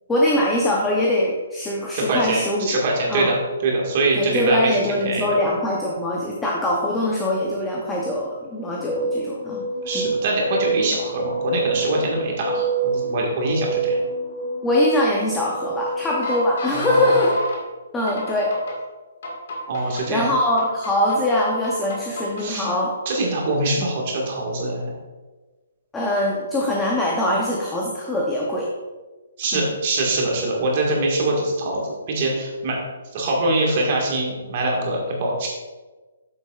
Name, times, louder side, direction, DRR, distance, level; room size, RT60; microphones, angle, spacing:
voice 1, 0.1-2.7 3.1-3.3 4.1-9.6 9.9-10.1 14.6-17.4 17.9-18.5 19.8-22.9 25.9-28.7 29.5-29.7, left 1 dB, 5° left, -3 dB, 0.6 m, -22 dB
voice 2, 1.9-5.4 9.8-14.0 16.7-17.2 19.7-20.3 22.4-22.7 23.0-24.9 29.4-31.8 32.1-32.8 33.1-35.5, right 2 dB, 30° right, -2 dB, 1.5 m, -23 dB
sound 1, 8.6-17.6 18.1-18.8 19.2-20.0 20.6-21.2 21.6-22.5, right 2 dB, 45° left, 1.6 m, -27 dB
9.3 x 7.4 x 2.3 m, 1.2 s
hypercardioid pair, 180°, 0 cm